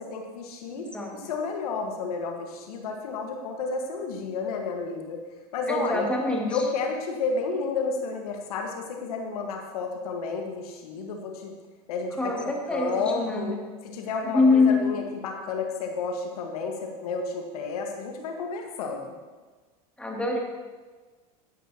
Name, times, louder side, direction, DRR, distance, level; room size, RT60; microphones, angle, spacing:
voice 1, 0.0-5.2 5.5-6.0 6.5-11.5 11.9-13.6 13.8-19.1, left 4 dB, 80° left, 2 dB, 1.7 m, -31 dB
voice 2, 0.8-1.2 5.7-6.6 12.2-13.7 14.3-15.0 20.0-20.4, left 3 dB, 5° left, -2 dB, 2.6 m, -24 dB
15.5 x 10.0 x 3.0 m, 1.4 s
hypercardioid pair, 105°, 19 cm